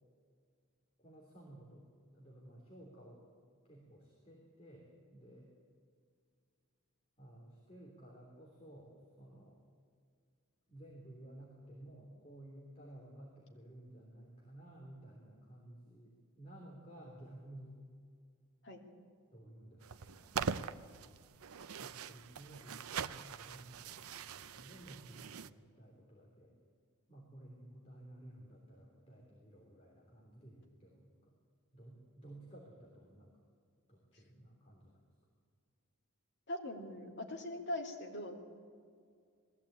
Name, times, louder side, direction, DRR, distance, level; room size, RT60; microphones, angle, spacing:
voice 1, 1.0-1.8 2.1-3.2 3.6-5.5 7.2-9.6 10.7-17.8 19.3-20.9 21.8-26.5 27.1-31.3 31.7-33.3 33.9-35.0, right 1 dB, 25° left, -3 dB, 3.3 m, -55 dB
sound 1, 19.8-25.5, right 6 dB, 75° right, 0.6 m, -43 dB
voice 2, 36.5-38.4, left 1 dB, 50° left, 0 dB, 2.7 m, -41 dB
20.5 x 14.5 x 8.8 m, 2.2 s
head